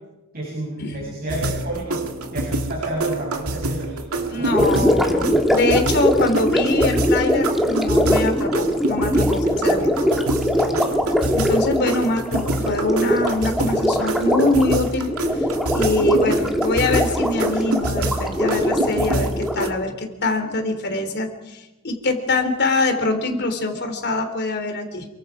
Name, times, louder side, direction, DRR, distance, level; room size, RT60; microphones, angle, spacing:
voice 1, 0.3-2.0 2.3-4.8 10.5-10.8, right 2 dB, 45° right, -3 dB, 7.7 m, -31 dB
sound 1, 1.3-19.7, right 2 dB, 85° right, 2.1 m, -27 dB
voice 2, 4.3-9.9 11.3-15.5 15.7-25.1, left 2 dB, 50° left, 6 dB, 3.4 m, -24 dB
Gurgling, 4.4-19.7, equal, ahead, 2.0 m, -21 dB
28.0 x 23.5 x 4.9 m, 1.0 s
head